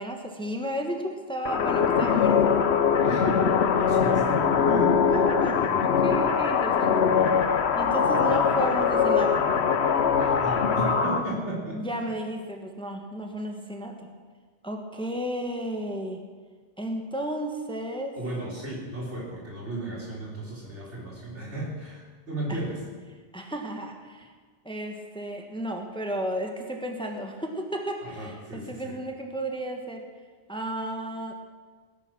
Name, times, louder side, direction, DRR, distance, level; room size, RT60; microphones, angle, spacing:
voice 1, 0.0-2.5 5.1-9.4 11.7-14.1 14.6-16.2 16.8-18.2 22.5-22.6 23.3-24.3 24.6-30.1 30.5-31.3, right 1 dB, 5° left, 2 dB, 1.3 m, -33 dB
sound 1, 1.5-11.2, left 6 dB, 70° left, 1.1 m, -22 dB
voice 2, 3.0-3.5 3.8-5.0 10.2-11.8 18.2-22.8 28.0-28.9, right 2 dB, 90° right, -4 dB, 4.4 m, -34 dB
18.0 x 10.0 x 6.1 m, 1.5 s
omnidirectional pair, 1.1 m